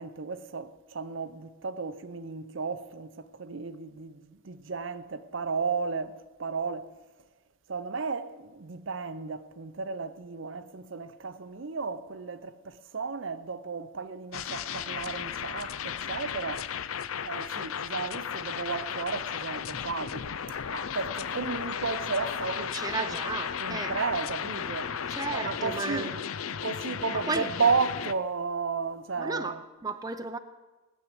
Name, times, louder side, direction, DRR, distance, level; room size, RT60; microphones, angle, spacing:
voice 1, 0.0-6.9 7.7-16.7 17.2-20.3 20.7-23.2 23.6-24.9 25.3-26.2 26.6-29.6, right 4 dB, 60° right, 0.7 m, -33 dB
sound 1, 14.3-28.1, left 8 dB, 80° left, 0.6 m, -35 dB
voice 2, 22.7-24.0 25.1-26.1 27.1-27.5 29.2-30.4, right 3 dB, 20° right, 0.6 m, -34 dB
17.5 x 7.4 x 9.7 m
head